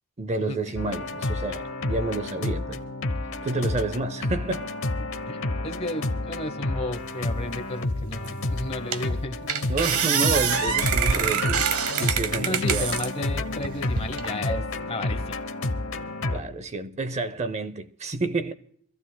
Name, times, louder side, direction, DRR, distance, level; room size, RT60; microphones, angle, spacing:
voice 1, 0.2-2.9 3.4-4.7 9.7-12.9 16.3-18.5, right 2 dB, 30° right, 0.6 m, -29 dB
sound 1, 0.8-16.4, left 2 dB, 60° left, 0.9 m, -30 dB
voice 2, 5.2-9.4 9.7-9.8 12.4-15.4, left 1 dB, 25° left, 1.0 m, -33 dB
sound 2, 8.3-8.4 8.9-9.2 9.5-13.1 13.6-14.3, right 7 dB, 80° right, 0.9 m, -25 dB
25.5 x 14.5 x 2.2 m
head